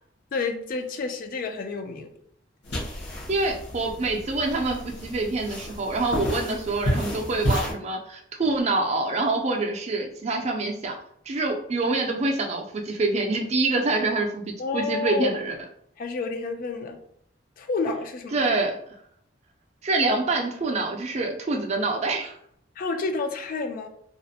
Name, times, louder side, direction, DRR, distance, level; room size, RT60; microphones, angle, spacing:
voice 1, 0.3-2.1 14.6-15.3 16.0-17.0 17.6-18.5 22.8-23.9, left 4 dB, 50° left, 6 dB, 0.3 m, -29 dB
sound 1, 2.6-7.7, equal, 65° left, 0.8 m, -31 dB
voice 2, 3.3-10.9 11.3-15.6 18.3-18.8 19.8-22.3, right 3 dB, 35° right, 2 dB, 0.4 m, -26 dB
2.3 x 2.1 x 2.7 m, 0.68 s
head